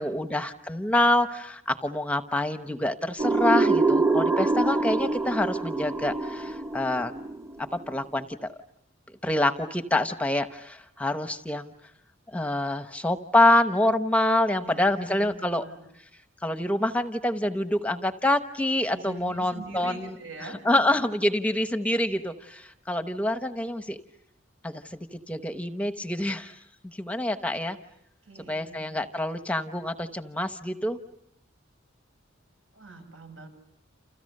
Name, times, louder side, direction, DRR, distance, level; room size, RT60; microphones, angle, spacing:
voice 1, 0.0-7.1 7.7-8.5 9.2-11.7 12.3-15.6 16.4-20.1 20.6-24.0 24.6-27.8 28.5-31.0, left 1 dB, 5° left, 8 dB, 1.0 m, -26 dB
sound 1, 3.2-7.9, right 3 dB, 15° right, 1.2 m, -25 dB
voice 2, 14.6-15.9 18.9-21.0 28.2-28.9 32.7-33.5, right 3 dB, 70° right, 6 dB, 7.7 m, -43 dB
30.0 x 29.0 x 6.6 m, 0.77 s
head